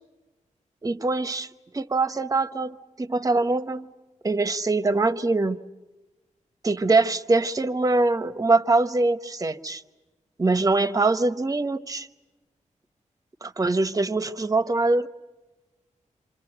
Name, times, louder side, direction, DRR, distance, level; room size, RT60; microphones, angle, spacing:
voice 1, 0.8-3.9 4.2-5.6 6.6-9.8 10.4-12.1 13.4-15.1, right 3 dB, 25° right, 12 dB, 0.9 m, -23 dB
27.5 x 27.0 x 8.0 m, 1.1 s
wide cardioid pair, 165°, 13 cm